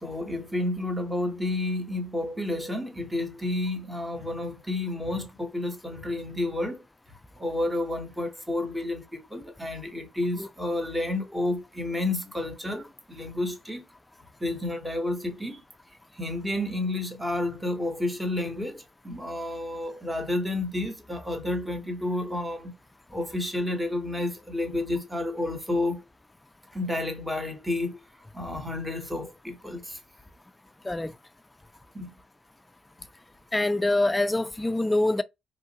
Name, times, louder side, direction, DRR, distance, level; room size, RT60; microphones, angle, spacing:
voice 1, 0.0-6.8 7.4-13.8 14.4-15.6 16.2-22.7 23.1-26.0 26.7-28.0 28.3-30.0 31.9-32.1, left 2 dB, 5° right, 1.0 m, -30 dB
voice 2, 33.5-35.2, left 2 dB, 15° left, 0.3 m, -25 dB
3.0 x 2.4 x 2.7 m
cardioid pair, 90°, 0 cm